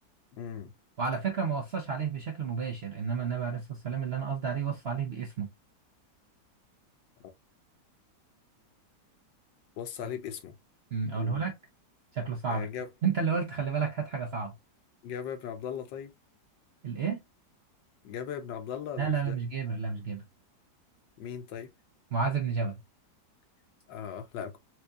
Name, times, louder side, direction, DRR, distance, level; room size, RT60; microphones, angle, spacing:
voice 1, 0.3-0.7 9.8-10.5 11.1-11.4 12.5-12.9 15.0-16.1 18.0-19.4 21.2-21.7 23.9-24.6, left 8 dB, 85° left, 1.5 m, -38 dB
voice 2, 1.0-5.5 10.9-11.5 12.1-12.7 13.0-14.5 16.8-17.2 19.0-20.2 22.1-22.8, right 6 dB, 55° right, 0.7 m, -31 dB
4.5 x 2.7 x 2.3 m
omnidirectional pair, 1.9 m